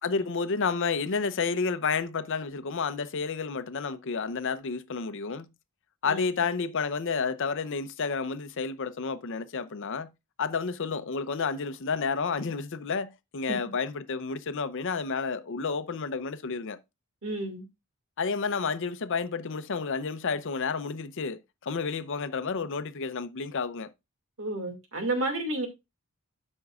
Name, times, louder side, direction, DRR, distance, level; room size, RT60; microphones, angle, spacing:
voice 1, 0.0-5.5 6.0-10.1 10.4-16.8 18.2-23.9, left 5 dB, 60° left, 0.6 m, -30 dB
voice 2, 6.1-6.4 17.2-17.7 24.4-25.7, right 2 dB, 65° right, 2.1 m, -31 dB
12.5 x 5.3 x 2.4 m
head